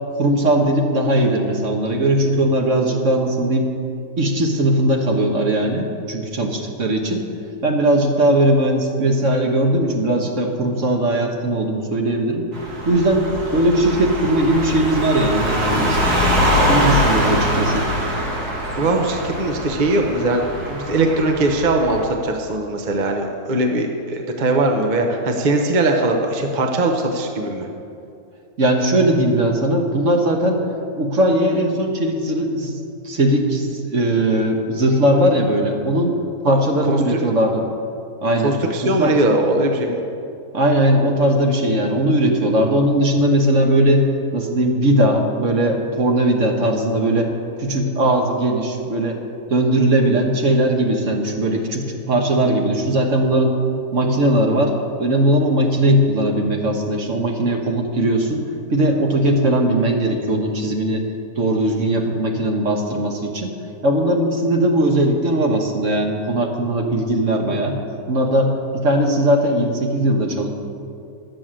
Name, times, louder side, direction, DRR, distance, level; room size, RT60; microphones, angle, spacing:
voice 1, 0.2-3.7 4.2-7.2 7.6-12.5 12.8-13.2 13.5-16.0 16.7-17.9 28.6-30.6 31.0-32.8 33.0-36.1 36.4-37.6 38.2-39.1 40.5-44.0 44.3-47.3 47.6-49.2 49.5-53.6 53.9-58.4 58.7-61.1 61.4-63.5 63.8-67.8 68.1-70.5, right 1 dB, 55° right, 2 dB, 1.5 m, -19 dB
sound 1, 12.5-22.0, equal, 75° right, 2.3 m, -22 dB
voice 2, 18.8-20.4 20.7-27.7 36.5-36.6 36.9-37.2 38.4-40.0, right 2 dB, 35° right, 3 dB, 0.9 m, -20 dB
11.0 x 7.7 x 7.5 m, 2.5 s
omnidirectional pair, 1.6 m